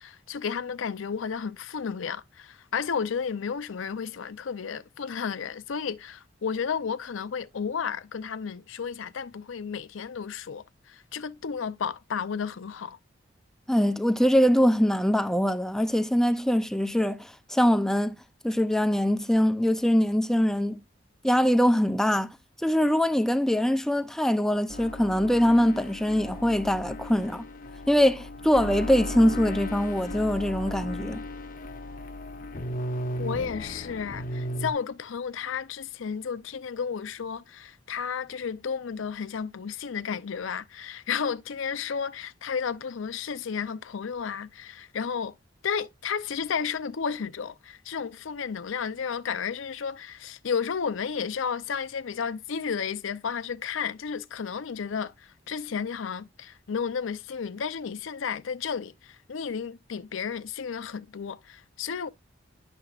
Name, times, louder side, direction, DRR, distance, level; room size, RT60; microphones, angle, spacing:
voice 1, 0.0-13.0 33.2-45.3 45.6-62.1, left 6 dB, 75° left, 0.5 m, -32 dB
voice 2, 13.7-18.2 18.4-20.8 21.2-27.5 27.9-31.2, equal, ahead, 0.4 m, -23 dB
sound 1, 24.7-34.7, left 1 dB, 45° left, 0.8 m, -36 dB
10.0 x 6.9 x 2.4 m
head